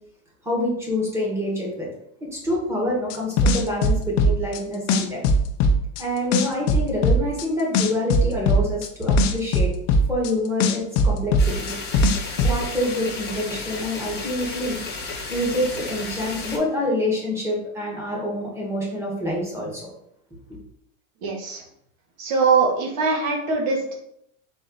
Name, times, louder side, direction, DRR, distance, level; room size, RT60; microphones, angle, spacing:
voice 1, 0.4-1.9 2.2-5.2 6.0-9.7 10.1-11.7 12.4-14.8 15.3-19.9, left 1 dB, 5° right, -3 dB, 1.2 m, -26 dB
sound 1, 3.1-4.6 4.9-6.0 6.3-7.4 7.7-10.3 10.6-12.5, left 1 dB, 40° left, 0.5 m, -19 dB
sound 2, 11.4-16.6, left 3 dB, 25° left, 1.0 m, -33 dB
voice 2, 21.2-21.6 22.2-23.9, right 4 dB, 55° right, 0 dB, 1.4 m, -22 dB
4.2 x 2.7 x 3.8 m, 0.72 s
supercardioid pair, 135°, 41 cm